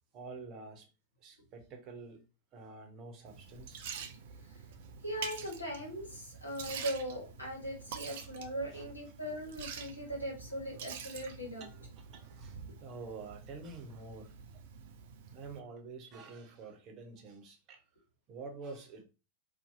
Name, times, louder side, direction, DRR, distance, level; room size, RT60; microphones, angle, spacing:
voice 1, 0.1-0.9 1.2-2.3 2.5-3.9 8.1-8.3 8.7-8.9 11.6-14.4 15.3-17.8 18.3-19.0, right 3 dB, 35° right, 0.8 m, -48 dB
Liquid, 3.3-15.6, right 6 dB, 55° right, 0.4 m, -47 dB
voice 2, 5.0-11.6, equal, 85° left, 1.0 m, -39 dB
2.6 x 2.2 x 2.6 m
figure-of-eight pair, 90°, 0 cm